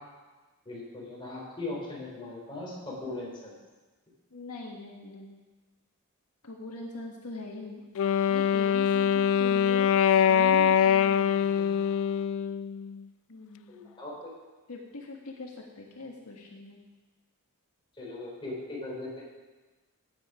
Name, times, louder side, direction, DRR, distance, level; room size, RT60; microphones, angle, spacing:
voice 1, 0.6-3.5 13.7-14.3 18.0-19.2, left 2 dB, 20° left, -4 dB, 4.2 m, -39 dB
voice 2, 4.3-5.4 6.4-7.8 8.3-11.8 13.3-13.8 14.7-16.8, left 2 dB, 80° left, -1 dB, 1.7 m, -42 dB
Wind instrument woodwind instrument, 8.0-13.0, left 8 dB, 65° left, 0.4 m, -23 dB
14.0 x 9.6 x 5.0 m, 1.2 s
head